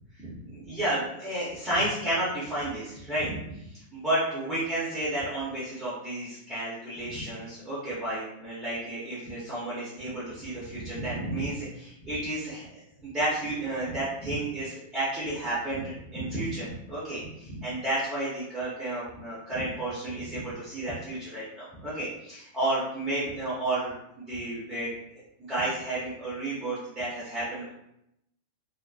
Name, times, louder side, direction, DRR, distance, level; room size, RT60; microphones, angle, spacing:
voice 1, 0.2-24.0 24.3-24.9 25.4-27.7, right 1 dB, 5° right, -10 dB, 0.6 m, -32 dB
2.5 x 2.4 x 2.3 m, 0.80 s
supercardioid pair, 175°, 0 cm